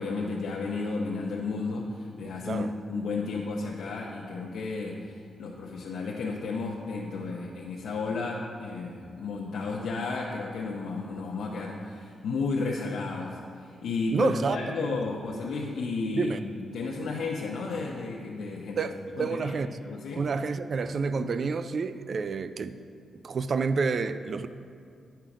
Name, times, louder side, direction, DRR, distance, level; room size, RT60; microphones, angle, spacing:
voice 1, 0.0-18.9 19.2-19.6 19.8-20.3, left 3 dB, 85° left, 0.8 m, -33 dB
voice 2, 14.1-15.0 16.1-16.4 18.8-19.7 20.2-22.7 23.2-24.5, right 4 dB, 45° right, 0.3 m, -29 dB
10.5 x 5.7 x 4.9 m
wide cardioid pair, 145°, 0 cm